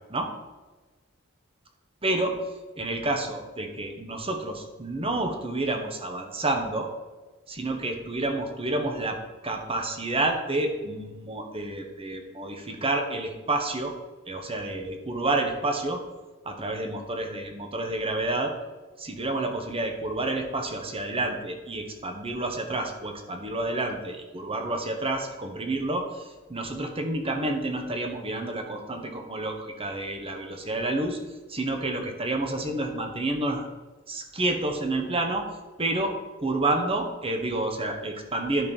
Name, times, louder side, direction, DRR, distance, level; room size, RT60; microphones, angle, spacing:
voice 1, 2.0-2.3 2.8-6.9 7.5-13.9 14.3-16.0 16.4-18.5 19.0-31.2 31.5-33.7 34.1-35.5 35.8-36.1 36.4-38.7, right 2 dB, 30° right, 4 dB, 1.3 m, -29 dB
10.5 x 5.3 x 5.5 m, 1.2 s
head